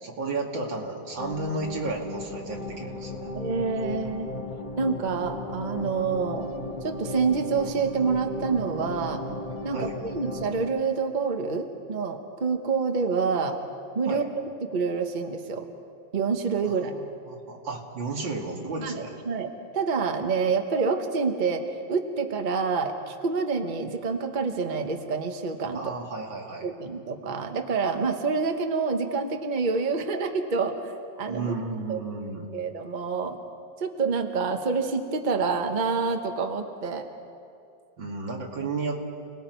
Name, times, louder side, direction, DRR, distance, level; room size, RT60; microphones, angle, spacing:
voice 1, 0.0-3.3 9.7-9.9 14.1-14.2 16.6-19.2 25.7-26.7 31.3-32.5 38.0-39.0, right 3 dB, 80° right, 0 dB, 2.9 m, -33 dB
sound 1, 1.2-10.7, left 2 dB, 25° left, 2.0 m, -35 dB
voice 2, 3.3-4.3 4.8-6.5 6.8-9.2 9.6-13.6 13.9-15.7 16.1-16.9 18.8-21.6 21.9-25.8 26.6-30.9 31.2-31.5 31.9-32.0 32.5-33.4 33.8-37.0, right 5 dB, 30° right, 4 dB, 1.1 m, -27 dB
29.5 x 19.0 x 4.6 m, 2.5 s
omnidirectional pair, 2.0 m